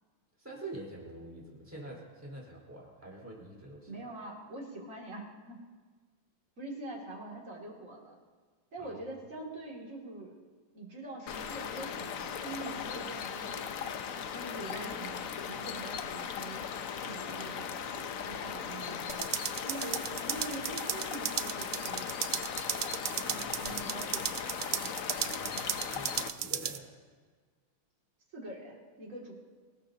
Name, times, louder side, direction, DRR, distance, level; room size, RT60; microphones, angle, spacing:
voice 1, 0.4-3.9 8.8-9.0 23.2-23.7 25.2-25.6 25.9-26.8, right 1 dB, 5° right, -3 dB, 4.4 m, -46 dB
voice 2, 3.9-5.6 6.6-8.1 8.7-10.3 10.7-13.9 14.3-16.6 17.0-19.1 19.6-22.4 23.2-24.5 28.3-29.3, right 2 dB, 35° right, -2 dB, 2.9 m, -44 dB
sound 1, 11.3-26.3, left 7 dB, 65° left, 0.8 m, -38 dB
sound 2, 19.1-26.8, right 11 dB, 80° right, 1.5 m, -36 dB
25.0 x 18.5 x 2.8 m, 1.5 s
omnidirectional pair, 2.3 m